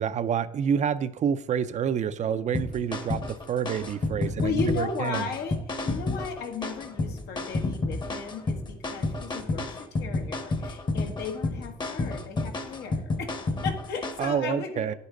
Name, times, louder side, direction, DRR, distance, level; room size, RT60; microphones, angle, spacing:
voice 1, 0.0-5.3 14.2-14.9, right 8 dB, 45° right, 13 dB, 0.5 m, -28 dB
sound 1, 2.5-14.3, left 2 dB, 25° left, 1.0 m, -30 dB
voice 2, 4.4-13.3 13.6-14.9, left 5 dB, 75° left, 5 dB, 1.5 m, -35 dB
9.7 x 8.3 x 3.8 m, 0.79 s
cardioid pair, 110°, 17 cm